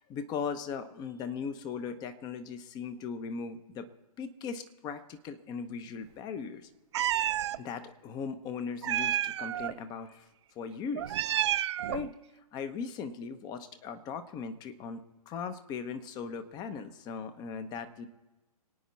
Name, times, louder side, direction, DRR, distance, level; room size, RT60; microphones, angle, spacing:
voice 1, 0.1-3.9 4.2-6.7 7.6-10.3 10.6-11.4 11.9-12.1 12.5-18.1, left 6 dB, 20° left, 11 dB, 0.8 m, -38 dB
Meow, 6.9-7.6 8.8-9.7 11.0-12.1, right 12 dB, 50° right, 0.4 m, -30 dB
24.5 x 9.1 x 4.1 m, 1.1 s
hypercardioid pair, 135°, 19 cm